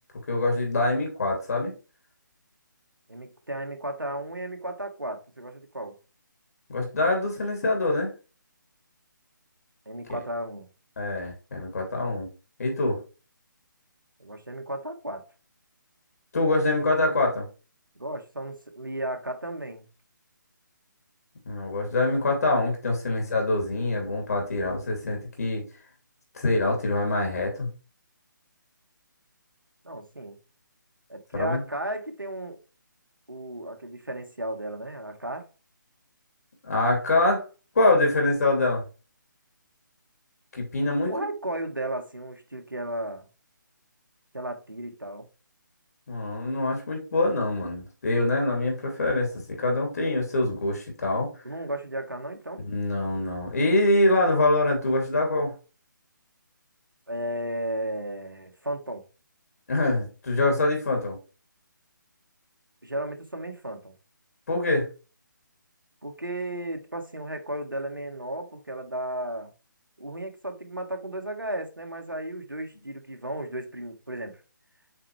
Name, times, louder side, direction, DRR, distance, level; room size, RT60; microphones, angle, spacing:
voice 1, 0.3-1.7 6.7-8.1 10.1-10.2 11.0-12.3 12.6-13.0 16.3-17.5 21.4-25.6 26.3-27.7 31.3-31.6 36.6-37.4 37.7-38.8 40.5-41.1 46.1-51.3 52.6-55.5 59.7-61.2 64.5-64.9, left 2 dB, 50° left, 2.9 m, -24 dB
voice 2, 3.1-6.0 9.8-10.7 14.2-15.3 17.9-19.9 29.8-30.4 31.1-32.6 33.3-35.5 41.0-43.3 44.3-45.3 51.4-52.6 57.1-59.0 62.8-63.9 66.0-69.5 70.0-74.4, right 1 dB, 85° right, 1.5 m, -34 dB
7.6 x 4.5 x 3.2 m
figure-of-eight pair, 145°, 11 cm